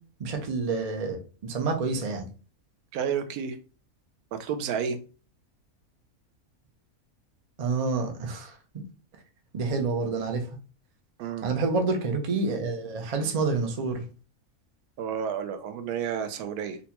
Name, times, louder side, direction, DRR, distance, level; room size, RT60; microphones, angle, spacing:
voice 1, 0.2-2.3 7.6-8.6 9.5-10.5 11.4-14.0, right 4 dB, 65° right, 4 dB, 0.3 m, -28 dB
voice 2, 2.9-3.6 4.3-5.0 11.2-11.5 15.0-16.8, right 7 dB, 85° right, 9 dB, 1.1 m, -31 dB
3.9 x 2.2 x 2.8 m, 0.35 s
omnidirectional pair, 1.6 m